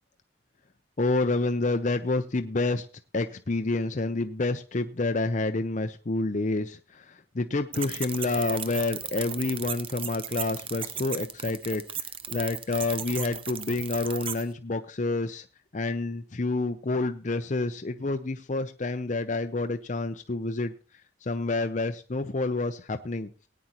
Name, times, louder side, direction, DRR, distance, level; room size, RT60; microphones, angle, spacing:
voice 1, 1.0-2.9 3.1-11.8 12.3-15.4 15.7-20.7 21.2-23.3, left 2 dB, 40° left, 7 dB, 0.6 m, -28 dB
sound 1, 7.7-14.4, right 8 dB, 25° right, 0.5 m, -36 dB
18.5 x 9.3 x 3.0 m, 0.33 s
head